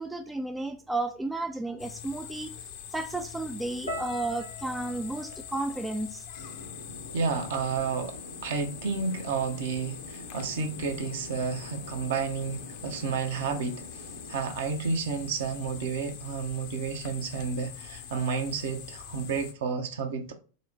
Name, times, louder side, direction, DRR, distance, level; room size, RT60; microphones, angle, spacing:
voice 1, 0.0-2.6 2.9-6.3, right 2 dB, 10° right, 0.3 m, -33 dB
sound 1, 1.8-19.5, left 9 dB, 45° left, 0.6 m, -44 dB
sound 2, 3.9-8.1 8.3-9.1 9.7-9.9, left 1 dB, 90° right, 1.3 m, -45 dB
sound 3, 6.4-14.3, left 1 dB, 80° left, 0.9 m, -46 dB
voice 2, 7.1-20.3, right 5 dB, 55° right, 0.7 m, -31 dB
4.0 x 2.1 x 4.2 m
figure-of-eight pair, 90°, 0 cm